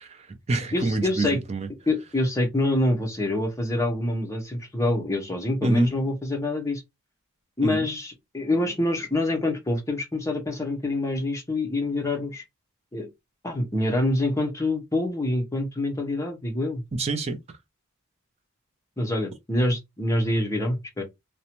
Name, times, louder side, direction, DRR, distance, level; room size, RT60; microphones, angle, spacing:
voice 1, 0.0-1.7 5.6-5.9 7.6-7.9 16.9-17.4, right 2 dB, 30° right, 0.4 m, -26 dB
voice 2, 0.7-1.4 1.9-6.8 7.6-12.4 12.9-13.1 13.4-16.8 19.0-21.0, left 1 dB, 15° left, 0.6 m, -26 dB
2.5 x 2.1 x 2.9 m
head